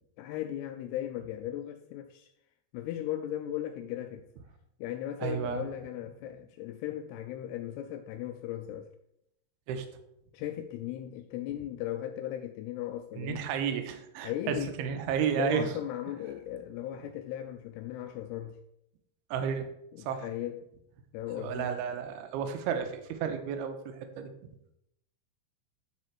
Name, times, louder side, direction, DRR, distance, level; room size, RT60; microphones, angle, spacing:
voice 1, 0.2-2.3 2.7-4.2 4.8-8.9 10.3-13.4 14.2-14.8 15.3-18.6 19.9-20.6 21.1-21.7, left 12 dB, 85° left, 2.5 m, -37 dB
voice 2, 5.2-5.6 9.7-9.9 13.2-15.7 19.3-19.7 20.0-20.3 21.4-24.3, right 7 dB, 80° right, 2.7 m, -32 dB
12.0 x 4.3 x 4.5 m
omnidirectional pair, 4.9 m